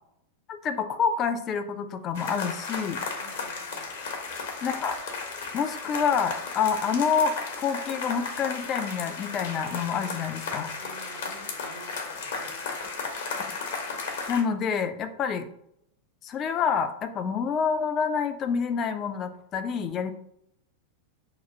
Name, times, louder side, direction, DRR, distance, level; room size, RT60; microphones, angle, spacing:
voice 1, 0.5-3.0 4.6-5.0 5.5-10.7 14.3-15.5 16.2-20.1, left 6 dB, 30° left, 8 dB, 0.3 m, -27 dB
sound 1, 2.1-14.4, left 4 dB, 55° left, 0.8 m, -34 dB
voice 2, 3.2-3.9 10.8-12.6, right 2 dB, 80° right, -2 dB, 1.0 m, -50 dB
2.9 x 2.3 x 4.1 m, 0.74 s
figure-of-eight pair, 90°, 0 cm